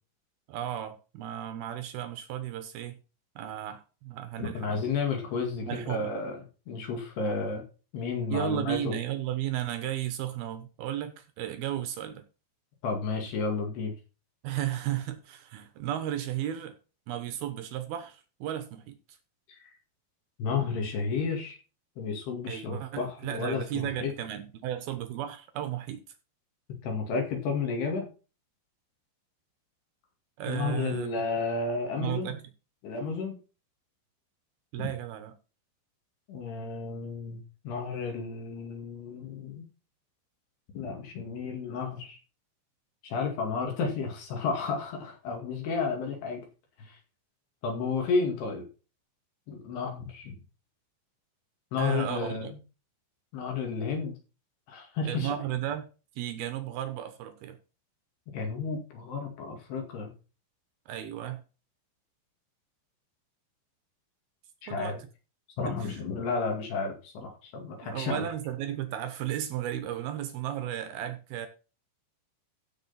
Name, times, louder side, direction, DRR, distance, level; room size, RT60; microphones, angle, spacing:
voice 1, 0.5-3.0 3.4-4.9 5.6-6.1 8.3-12.2 14.4-16.8 17.1-19.2 22.5-26.0 30.4-31.1 32.0-32.4 34.7-35.3 51.8-52.5 55.0-55.9 56.2-57.6 60.9-61.4 64.7-65.0 65.6-66.0 67.8-71.5, right 11 dB, 75° right, 2.3 m, -34 dB
voice 2, 4.4-6.4 6.7-7.6 7.9-8.9 12.8-13.9 19.5-19.6 20.4-21.6 22.0-24.1 26.8-28.1 30.5-32.4 32.8-33.4 34.8-34.9 36.3-39.7 40.8-42.2 43.0-46.4 46.8-47.0 47.6-48.6 49.5-50.4 51.7-52.5 53.3-54.2 54.7-55.4 58.3-60.1 64.6-65.0 65.6-68.3, left 4 dB, 60° left, 3.8 m, -32 dB
15.5 x 6.4 x 4.1 m
omnidirectional pair, 5.7 m